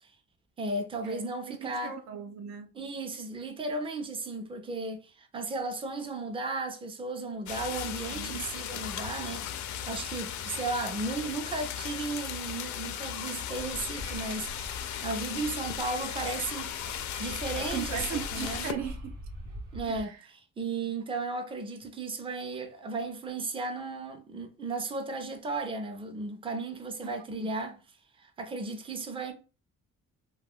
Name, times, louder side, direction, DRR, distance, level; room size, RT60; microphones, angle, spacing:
voice 1, 0.6-1.9 2.7-9.5 9.9-14.5 15.0-16.7 17.2-18.6 19.7-27.8 28.2-29.3, right 3 dB, 20° right, 0.5 m, -35 dB
voice 2, 1.5-2.7 8.1-8.4 17.6-19.1 19.9-20.2 27.4-27.5, right 8 dB, 65° right, 0.5 m, -37 dB
sound 1, 7.5-18.7, left 10 dB, 70° left, 0.5 m, -36 dB
Wind, 13.4-20.0, right 1 dB, 85° right, 0.9 m, -44 dB
2.3 x 2.2 x 3.5 m
cardioid pair, 90°, 30 cm